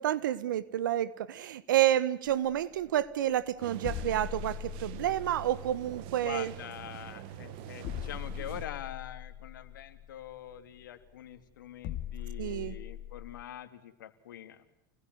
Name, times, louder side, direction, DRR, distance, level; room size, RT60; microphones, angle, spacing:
voice 1, 0.0-6.5 12.4-12.8, right 12 dB, 80° right, 17 dB, 1.6 m, -29 dB
sound 1, 2.3-13.4, left 11 dB, 50° left, 3.1 m, -42 dB
sound 2, 3.6-8.7, right 12 dB, 55° right, 2.2 m, -45 dB
voice 2, 6.2-14.6, left 11 dB, 80° left, 10 dB, 2.9 m, -44 dB
29.5 x 20.0 x 9.7 m, 0.86 s
hypercardioid pair, 100°, 10 cm